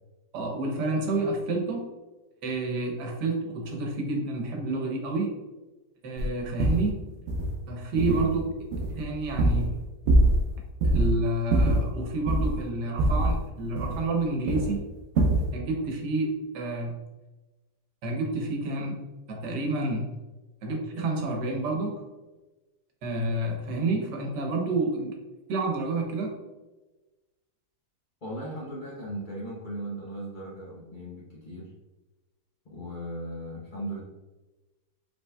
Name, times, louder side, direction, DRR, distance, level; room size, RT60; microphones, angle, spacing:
voice 1, 0.3-1.9 2.4-5.3 6.0-7.1 7.7-8.4 8.9-9.8 10.8-14.8 15.5-17.0 18.0-19.0 19.3-20.2 20.6-22.0 23.0-25.1 25.5-26.4, right 2 dB, 90° right, 1 dB, 1.5 m, -29 dB
sound 1, 6.2-6.3 6.6-6.9 7.3-7.5 8.0-8.4 8.7-9.8 10.1-10.5 10.8-11.1 11.5-12.6 13.0-14.2 14.5-14.8 15.2-15.5, right 1 dB, 55° right, 0.8 m, -23 dB
voice 2, 28.2-31.7 32.6-34.0, right 1 dB, 40° left, -5 dB, 0.8 m, -37 dB
5.4 x 4.0 x 2.2 m, 1.1 s
omnidirectional pair, 1.8 m